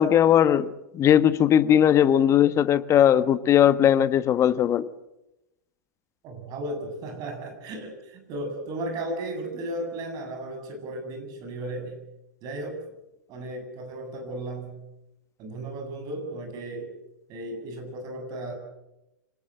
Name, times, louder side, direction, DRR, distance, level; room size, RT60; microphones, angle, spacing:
voice 1, 0.0-4.8, left 10 dB, 30° left, 14 dB, 1.3 m, -19 dB
voice 2, 6.2-11.9 12.4-12.8 13.3-14.8 15.4-16.9 17.3-18.5, right 1 dB, 40° right, 5 dB, 8.0 m, -35 dB
25.5 x 19.0 x 7.7 m, 0.92 s
figure-of-eight pair, 95°, 10 cm